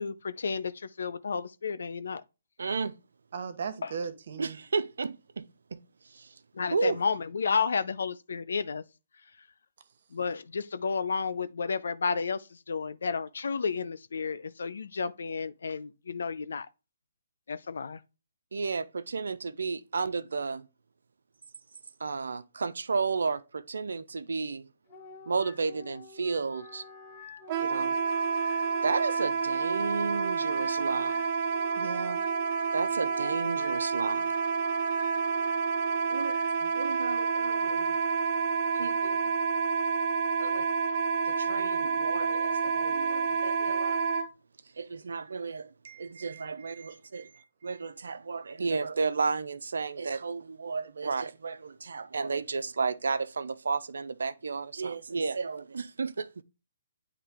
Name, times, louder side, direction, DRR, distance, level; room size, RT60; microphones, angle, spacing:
voice 1, 0.0-2.2 3.8-4.0 6.5-8.8 9.4-9.5 10.1-16.7 17.5-18.0, left 5 dB, 70° left, 0.6 m, -32 dB
voice 2, 2.6-2.9 4.4-6.3 6.7-7.0 18.5-20.7 22.0-24.7 25.3-26.8 27.6-27.9 28.8-31.3 32.7-34.3 36.1-36.4 36.7-38.0 38.7-39.3 40.4-40.7 41.3-44.0 44.8-45.7 46.0-47.3 47.6-56.4, right 4 dB, 75° right, 0.5 m, -33 dB
voice 3, 3.3-4.6 31.8-32.2 45.8-47.9, right 6 dB, 60° right, 1.0 m, -40 dB
Wind instrument woodwind instrument, 24.9-36.6, left 4 dB, 35° left, 1.6 m, -49 dB
Wind instrument woodwind instrument 2, 27.5-44.3, right 5 dB, 35° right, 0.7 m, -29 dB
9.2 x 3.3 x 3.6 m
hypercardioid pair, 140°, 0 cm